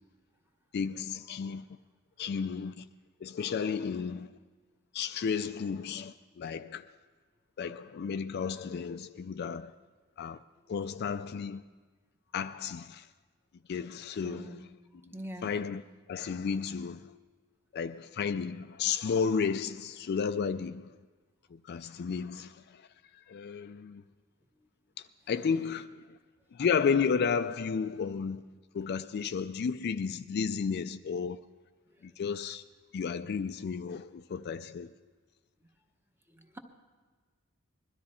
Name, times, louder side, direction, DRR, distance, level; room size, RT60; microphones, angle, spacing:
voice 1, 0.7-1.6 2.2-2.9 3.2-4.3 4.9-6.9 7.6-9.7 10.2-10.4 10.7-11.6 12.3-13.1 13.7-14.6 15.0-15.1 15.4-15.8 16.1-17.1 17.7-20.9 21.5-22.9 23.1-24.0 25.3-26.2 26.5-28.4 28.7-31.4 32.0-32.6 32.9-34.9, left 6 dB, 50° left, 0.3 m, -33 dB
voice 2, 14.2-14.7 15.1-15.5 36.3-36.6, right 1 dB, 10° right, 0.9 m, -43 dB
21.0 x 12.5 x 4.3 m
head